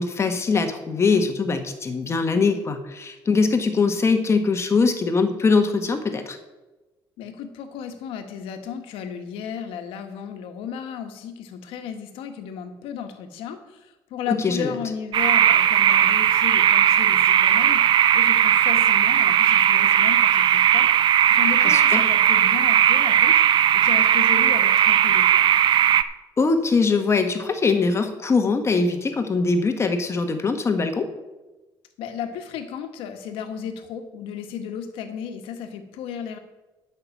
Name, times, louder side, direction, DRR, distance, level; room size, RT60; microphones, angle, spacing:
voice 1, 0.0-6.4 14.3-14.7 21.6-22.0 26.4-31.1, left 4 dB, 30° left, 7 dB, 1.4 m, -22 dB
voice 2, 7.2-25.5 32.0-36.4, left 7 dB, 85° left, 6 dB, 1.5 m, -34 dB
sound 1, 15.1-26.0, right 10 dB, 60° right, 0.6 m, -17 dB
12.0 x 5.9 x 7.3 m, 1.1 s
cardioid pair, 110°, 9 cm